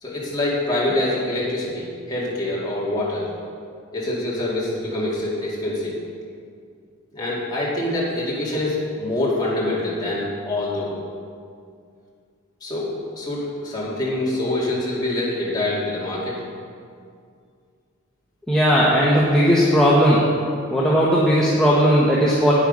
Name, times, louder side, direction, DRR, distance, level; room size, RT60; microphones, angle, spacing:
voice 1, 0.0-3.3 3.9-5.9 7.1-10.9 12.6-16.4, left 1 dB, 20° left, -7 dB, 2.4 m, -25 dB
voice 2, 18.5-20.3 20.7-22.5, equal, 5° left, -7 dB, 1.1 m, -17 dB
9.7 x 9.1 x 5.3 m, 2.3 s
head